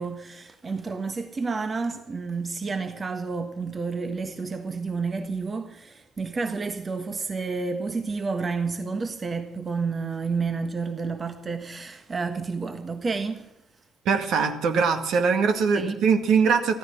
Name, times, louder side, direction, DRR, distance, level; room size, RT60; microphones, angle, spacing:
voice 1, 0.0-13.5 15.7-16.0, right 4 dB, 30° right, 1.4 m, -30 dB
voice 2, 14.1-16.8, right 5 dB, 60° right, 2.0 m, -22 dB
15.0 x 14.5 x 6.0 m
hypercardioid pair, 50°, 0 cm